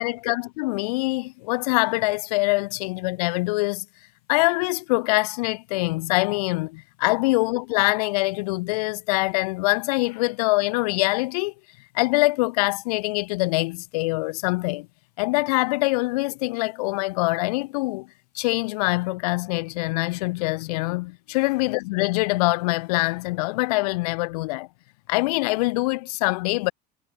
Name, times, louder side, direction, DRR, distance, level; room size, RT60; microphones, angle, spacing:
voice 1, 0.0-3.9 4.3-11.5 11.9-14.9 15.2-18.1 18.3-24.7 25.1-26.7, left 23 dB, 75° left, 1.8 m, -24 dB
cardioid pair, 170°, 20 cm